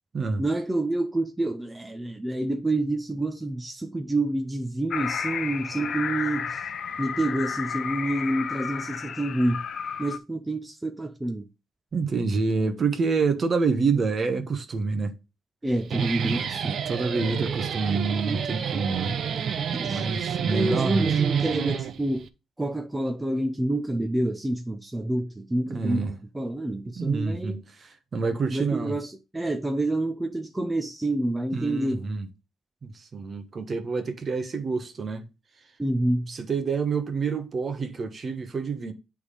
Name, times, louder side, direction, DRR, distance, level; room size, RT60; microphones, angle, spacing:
voice 1, 0.4-6.7 7.0-9.6 10.0-11.5 15.6-16.8 19.7-20.0 20.4-22.3 22.6-27.6 28.4-32.0 35.8-36.3, right 1 dB, 15° right, 0.6 m, -28 dB
sound 1, 4.9-10.2, left 7 dB, 60° left, 0.6 m, -32 dB
voice 2, 11.9-15.1 16.3-16.4 16.9-19.1 19.9-21.0 25.7-26.1 26.9-29.0 31.5-32.3 32.8-35.2 36.3-38.9, right 4 dB, 40° right, 1.0 m, -27 dB
Guitar, 15.7-22.3, right 7 dB, 60° right, 0.6 m, -29 dB
8.2 x 3.6 x 4.9 m
cardioid pair, 90°, 0 cm